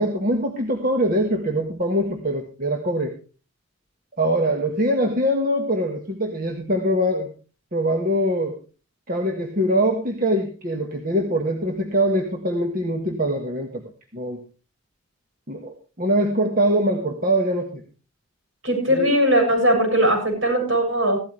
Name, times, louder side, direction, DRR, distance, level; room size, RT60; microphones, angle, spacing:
voice 1, 0.0-3.2 4.2-7.3 7.7-8.6 9.1-13.8 14.1-14.4 15.5-17.8 18.9-19.1, right 1 dB, 40° right, 4 dB, 1.5 m, -23 dB
voice 2, 18.6-21.2, right 1 dB, 65° right, 3 dB, 7.5 m, -19 dB
15.5 x 13.0 x 3.3 m, 0.35 s
head